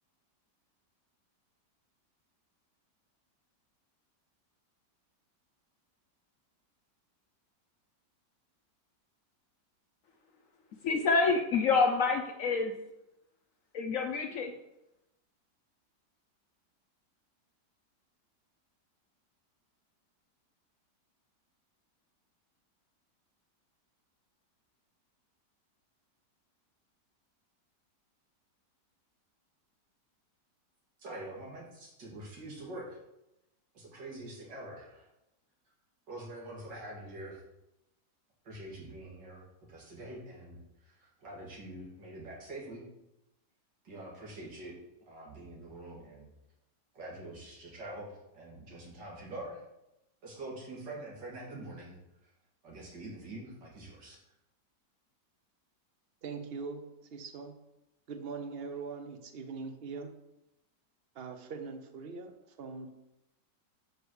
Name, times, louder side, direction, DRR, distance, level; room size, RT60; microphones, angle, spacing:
voice 1, 10.8-12.8 13.7-14.5, left 4 dB, 65° left, 4 dB, 0.8 m, -27 dB
voice 2, 31.0-33.0 33.7-35.1 36.1-37.4 38.4-39.4 39.7-42.8 43.8-44.8 45.1-46.3 46.9-49.6 50.2-52.3 52.6-54.2, right 1 dB, 75° right, -4 dB, 2.5 m, -45 dB
voice 3, 56.2-57.5 58.1-60.1 61.1-62.3 62.6-62.9, right 4 dB, 60° right, 6 dB, 0.6 m, -41 dB
5.1 x 4.6 x 6.2 m, 0.90 s
omnidirectional pair, 1.9 m